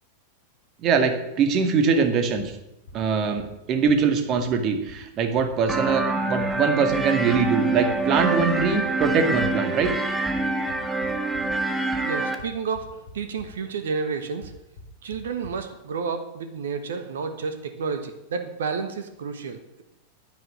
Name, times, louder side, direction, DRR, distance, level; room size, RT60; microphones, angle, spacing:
voice 1, 0.8-2.6 2.9-9.9, right 5 dB, 35° right, 7 dB, 2.2 m, -22 dB
sound 1, 2.5-2.6 2.9-3.0 3.4-3.5 3.9-4.0 4.4-4.5 4.9-5.0 5.4-5.5 5.9-6.0 6.4-6.5 6.9-7.0 7.4-7.5 7.9-8.0 8.4-9.4 10.4-11.4 12.4-12.5 12.7-13.1 13.4-13.5 14.4-14.5 14.8-14.9 15.1-15.2 15.4-15.5, left 3 dB, 60° left, 3.9 m, -43 dB
sound 2, 5.7-12.4, right 2 dB, 10° right, 1.6 m, -26 dB
voice 2, 12.1-14.5 15.0-19.8, right 5 dB, 60° right, 8 dB, 1.4 m, -31 dB
10.0 x 9.7 x 9.0 m, 0.90 s
figure-of-eight pair, 90°, 0 cm